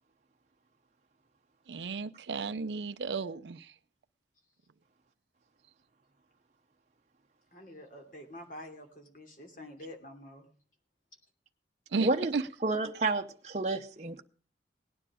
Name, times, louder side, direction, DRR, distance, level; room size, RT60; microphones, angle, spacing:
voice 1, 1.7-3.7 11.9-12.4, right 4 dB, 85° right, 0.5 m, -34 dB
voice 2, 7.5-10.5, left 1 dB, 50° left, 3.0 m, -47 dB
voice 3, 12.0-12.3 12.6-14.2, right 2 dB, 40° right, 0.8 m, -30 dB
18.5 x 10.0 x 5.0 m
head